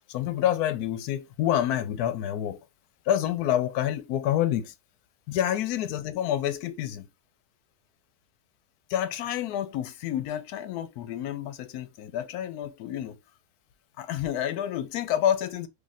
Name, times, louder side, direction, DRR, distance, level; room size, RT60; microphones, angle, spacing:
voice 1, 0.1-2.6 3.1-4.7 5.3-7.1 8.9-13.2 14.0-15.7, left 11 dB, 80° left, 1.1 m, -28 dB
3.1 x 2.4 x 4.0 m
omnidirectional pair, 1.6 m